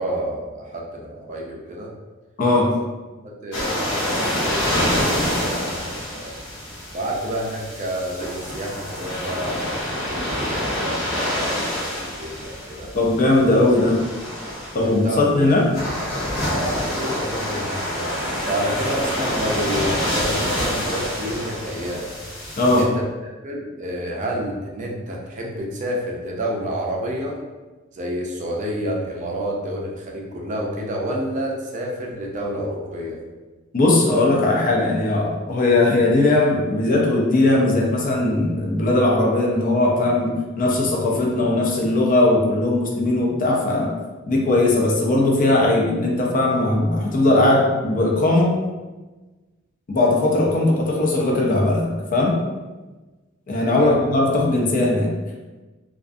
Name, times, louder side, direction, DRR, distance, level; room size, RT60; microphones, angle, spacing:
voice 1, 0.0-1.9 3.2-6.4 6.9-12.9 14.7-15.2 15.5-15.6 16.2-22.1 22.7-22.9 23.2-27.3 27.9-33.2 53.8-54.0, right 1 dB, 40° right, -1 dB, 0.4 m, -29 dB
voice 2, 2.4-2.7 12.9-14.0 14.7-15.7 22.6-22.9 33.7-43.9 44.3-48.6 49.9-52.4 53.5-55.1, left 2 dB, 40° left, -1 dB, 0.4 m, -19 dB
sound 1, 3.5-22.8, left 1 dB, 65° left, 0.7 m, -27 dB
2.3 x 2.2 x 2.5 m, 1.2 s
head